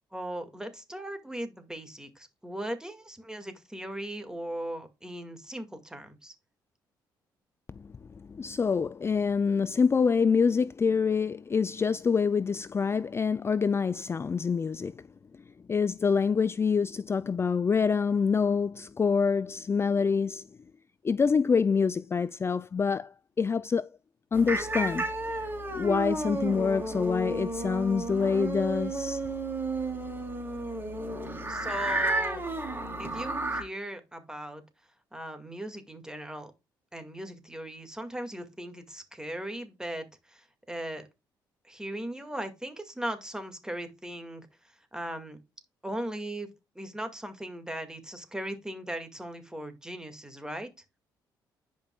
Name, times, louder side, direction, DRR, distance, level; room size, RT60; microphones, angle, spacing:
voice 1, 0.1-6.3 31.5-32.4 33.0-34.6 35.1-36.5 36.9-41.0 41.6-44.5 44.9-45.4 45.8-46.5 46.8-50.7, right 1 dB, 10° right, 2.0 m, -38 dB
voice 2, 8.3-14.9 15.7-20.4 21.0-23.1 23.4-23.9 24.3-25.5 25.8-29.2, left 5 dB, 30° left, 0.3 m, -26 dB
sound 1, 24.3-33.6, right 2 dB, 25° right, 2.9 m, -32 dB
10.5 x 5.4 x 2.3 m
supercardioid pair, 70°, 9 cm